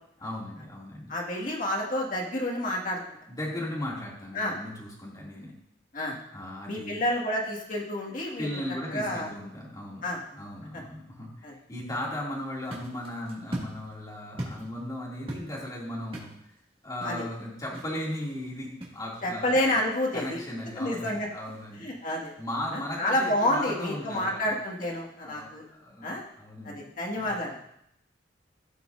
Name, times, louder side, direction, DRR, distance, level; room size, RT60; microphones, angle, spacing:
voice 1, 0.2-1.1 3.3-5.5 6.3-7.0 8.4-10.0 10.3-16.3 16.8-19.7 20.1-21.9 22.4-24.5 25.2-26.1 26.4-27.4, left 1 dB, 20° left, -5 dB, 2.6 m, -37 dB
voice 2, 1.1-3.0 4.3-4.5 5.9-6.2 6.7-8.6 8.9-9.3 10.0-10.2 10.7-10.8 11.4-11.5 17.0-17.2 19.2-20.4 20.8-21.3 21.8-22.3 22.7-25.6 26.0-26.2 26.6-27.6, left 1 dB, 45° left, -2 dB, 1.9 m, -29 dB
sound 1, 12.3-25.9, right 1 dB, 30° right, 2.0 m, -45 dB
15.5 x 6.2 x 2.6 m, 0.76 s
head